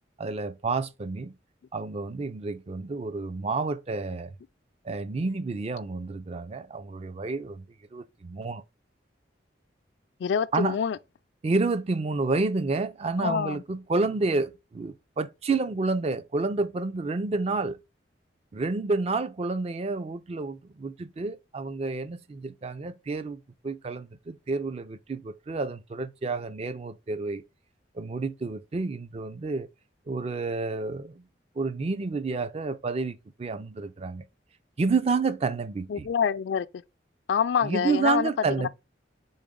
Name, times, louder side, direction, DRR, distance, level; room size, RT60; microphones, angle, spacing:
voice 1, 0.2-1.3 1.7-4.3 4.8-7.6 7.9-8.6 10.5-10.8 11.4-17.8 18.5-23.4 23.6-27.4 27.9-29.7 30.1-31.3 31.6-34.2 34.8-36.1 37.6-38.7, right 3 dB, 35° right, 0.4 m, -29 dB
voice 2, 10.2-11.0 13.2-13.6 35.9-36.7 37.3-38.3 38.6-38.7, left 7 dB, 70° left, 0.3 m, -26 dB
4.0 x 3.4 x 3.7 m
head